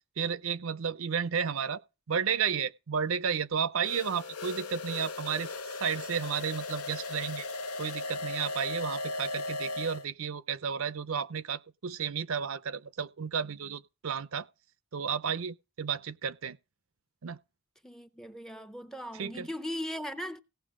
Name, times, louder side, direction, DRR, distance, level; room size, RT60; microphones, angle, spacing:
voice 1, 0.2-1.8 2.1-5.5 5.8-7.5 7.8-14.5 14.9-16.6 17.2-17.4 19.1-19.5, right 7 dB, 65° right, 0.5 m, -32 dB
sound 1, 3.8-10.0, left 2 dB, 85° left, 1.0 m, -37 dB
voice 2, 17.8-20.4, equal, ahead, 0.5 m, -38 dB
17.0 x 6.8 x 3.7 m
head